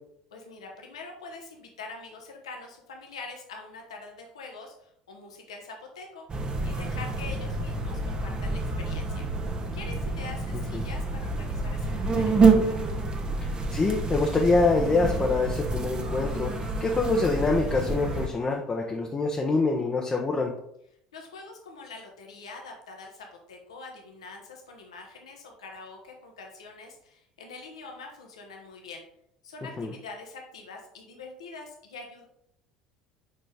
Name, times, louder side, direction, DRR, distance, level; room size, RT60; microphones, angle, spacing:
voice 1, 0.3-6.2 6.6-9.3 9.7-12.8 21.1-29.0 29.4-32.2, left 3 dB, 80° left, 2 dB, 1.2 m, -44 dB
sound 1, 6.3-18.3, right 3 dB, 30° right, 1.0 m, -27 dB
voice 2, 13.4-20.5 29.8-29.9, left 3 dB, 25° left, 0 dB, 0.9 m, -25 dB
6.6 x 4.3 x 3.5 m, 0.72 s
hypercardioid pair, 70°, 3 cm